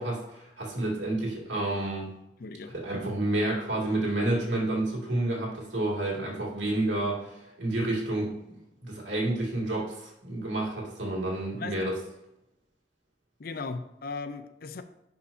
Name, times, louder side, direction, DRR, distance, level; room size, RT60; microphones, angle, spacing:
voice 1, 0.0-2.1 2.7-8.5 8.8-11.9, right 1 dB, 80° right, -3 dB, 2.4 m, -30 dB
voice 2, 2.4-2.7 11.6-11.8 13.4-14.8, left 4 dB, 50° left, 10 dB, 0.5 m, -37 dB
10.5 x 5.5 x 2.7 m, 0.88 s
head